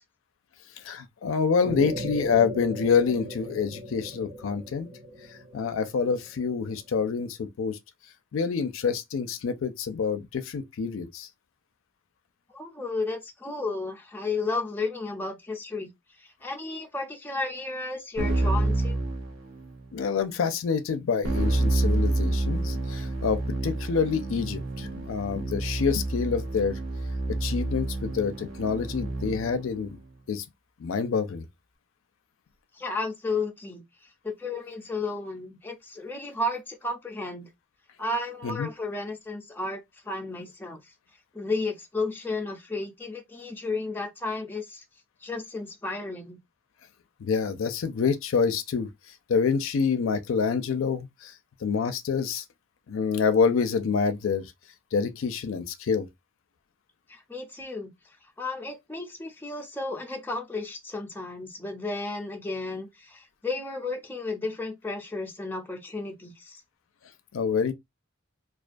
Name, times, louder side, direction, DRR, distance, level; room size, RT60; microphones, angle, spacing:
voice 1, 0.8-4.9 5.3-7.8 8.3-11.3 19.9-26.8 27.3-30.0 30.3-30.4 30.8-31.4 38.4-38.7 47.2-48.9 49.3-51.3 51.6-52.4 52.9-54.5 54.9-56.1 67.3-67.7, left 5 dB, 80° left, 0.4 m, -27 dB
sound 1, 1.6-6.7, equal, 45° right, 0.5 m, -38 dB
voice 2, 12.5-15.9 16.2-19.0 32.7-33.8 34.2-37.5 38.0-40.9 41.3-44.8 45.2-46.4 57.1-57.9 58.4-66.6, left 3 dB, 10° left, 0.5 m, -33 dB
Keyboard (musical), 18.2-19.8 21.2-29.6, right 2 dB, 85° right, 0.7 m, -28 dB
2.3 x 2.2 x 2.5 m
head